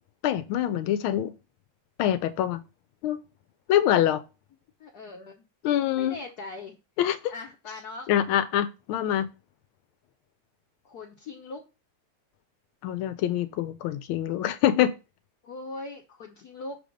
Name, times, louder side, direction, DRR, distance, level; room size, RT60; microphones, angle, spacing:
voice 1, 0.2-1.3 2.0-2.6 3.0-3.2 3.7-4.2 5.6-6.2 7.0-7.3 8.1-9.3 12.8-15.0, left 11 dB, 80° left, 1.5 m, -25 dB
voice 2, 4.8-5.4 6.0-6.8 7.3-8.1 10.8-11.6 15.4-16.8, left 3 dB, 60° left, 1.1 m, -40 dB
6.8 x 3.5 x 5.1 m
omnidirectional pair, 2.3 m